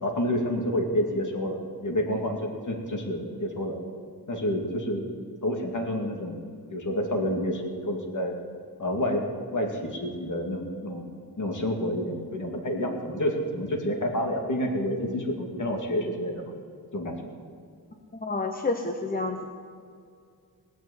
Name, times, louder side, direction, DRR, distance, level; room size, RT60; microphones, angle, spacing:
voice 1, 0.0-3.8 4.3-5.0 5.4-6.4 6.7-8.3 8.8-9.2 9.5-11.1 11.4-16.5 16.9-17.2, equal, 50° left, 2 dB, 2.3 m, -29 dB
voice 2, 18.1-19.5, left 3 dB, 25° left, 4 dB, 0.9 m, -29 dB
18.5 x 6.3 x 9.7 m, 2.3 s
wide cardioid pair, 110°, 38 cm